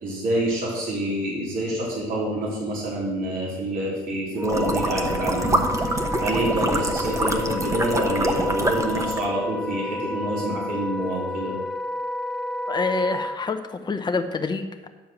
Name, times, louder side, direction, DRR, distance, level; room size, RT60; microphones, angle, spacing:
voice 1, 0.0-5.9 6.2-11.5, right 1 dB, 60° right, -5 dB, 3.7 m, -27 dB
Wind instrument woodwind instrument, 4.4-13.4, left 1 dB, ahead, 0.5 m, -30 dB
sound 1, 4.4-9.3, right 1 dB, 20° right, 1.0 m, -26 dB
voice 2, 12.7-14.9, left 4 dB, 25° left, 7 dB, 0.9 m, -27 dB
10.5 x 4.6 x 7.6 m, 1.2 s
cardioid pair, 110°, 17 cm